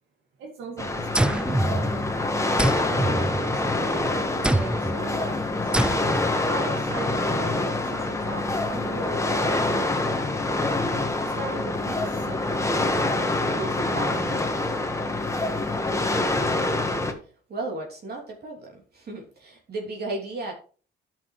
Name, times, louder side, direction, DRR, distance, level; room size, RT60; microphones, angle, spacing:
voice 1, 0.4-2.0 2.8-6.0 6.5-10.4 11.2-13.0 13.5-14.7, right 3 dB, 80° right, -1 dB, 2.1 m, -38 dB
sound 1, 0.8-17.1, left 2 dB, 15° left, 1.5 m, -26 dB
sound 2, 1.1-2.2 2.6-3.9 4.4-5.0 5.7-6.4, right 1 dB, 5° right, 0.4 m, -25 dB
voice 2, 17.5-20.5, right 2 dB, 55° right, -1 dB, 3.0 m, -34 dB
12.5 x 6.0 x 3.2 m, 0.41 s
cardioid pair, 90°, 20 cm